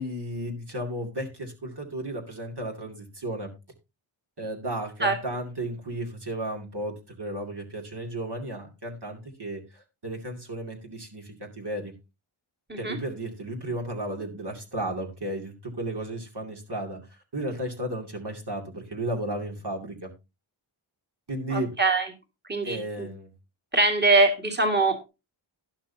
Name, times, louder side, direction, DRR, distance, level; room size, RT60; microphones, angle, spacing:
voice 1, 0.0-3.5 4.4-11.9 12.8-20.1 21.3-21.7 22.6-23.3, right 1 dB, 50° right, 2 dB, 2.7 m, -34 dB
voice 2, 21.5-22.1 22.4-23.1 23.7-25.1, right 2 dB, 20° right, 3 dB, 2.2 m, -23 dB
12.0 x 10.5 x 2.8 m, 0.26 s
wide cardioid pair, 60°, 50 cm